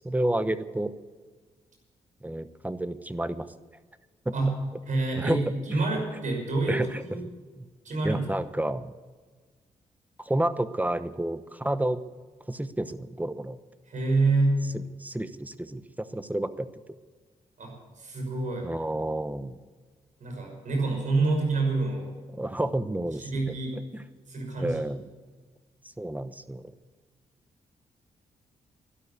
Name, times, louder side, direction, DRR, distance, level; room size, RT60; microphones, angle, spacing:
voice 1, 0.0-0.9 2.2-3.5 4.2-4.3 5.2-5.4 5.7-5.8 6.7-7.0 7.6-7.7 8.0-8.9 10.2-12.0 12.5-13.6 15.0-16.7 18.6-19.6 22.3-23.6 24.6-25.0 26.0-26.7, right 1 dB, 10° right, 13 dB, 1.0 m, -30 dB
voice 2, 4.9-7.2 7.8-8.3 13.9-14.7 17.6-18.7 20.2-22.1 23.2-23.8 24.3-24.8, right 3 dB, 60° right, 1 dB, 6.0 m, -27 dB
12.0 x 11.5 x 8.3 m, 1.4 s
supercardioid pair, 50°, 15 cm